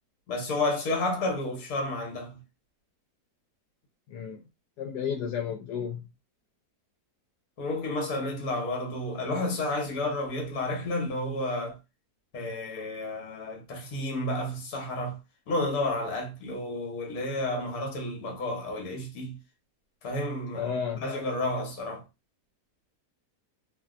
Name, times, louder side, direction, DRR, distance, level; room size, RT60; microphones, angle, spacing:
voice 1, 0.3-2.4 7.6-11.8 12.3-15.2 15.5-19.4 20.0-20.7 21.0-22.1, left 2 dB, 65° left, 1.3 m, -31 dB
voice 2, 4.1-4.4 4.8-6.0 20.5-21.0, left 7 dB, 85° left, 1.2 m, -32 dB
2.7 x 2.7 x 2.3 m
omnidirectional pair, 1.7 m